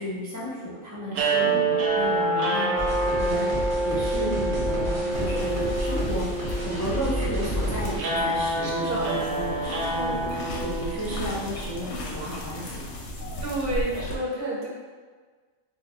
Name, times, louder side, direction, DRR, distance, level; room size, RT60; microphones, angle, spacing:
voice 1, 0.0-10.2 10.6-12.7, equal, 30° left, -9 dB, 0.3 m, -33 dB
sound 1, 1.1-11.3, right 2 dB, 85° right, 1.0 m, -27 dB
voice 2, 1.4-1.8 4.1-4.6 8.6-9.1 9.9-10.3 10.9-11.0 13.4-14.7, right 1 dB, 60° right, -4 dB, 0.7 m, -31 dB
sound 2, 2.8-8.0, left 1 dB, 25° right, 0.8 m, -30 dB
sound 3, 5.1-14.2, left 1 dB, 85° left, 1.0 m, -36 dB
2.6 x 2.2 x 4.0 m, 1.5 s
omnidirectional pair, 1.3 m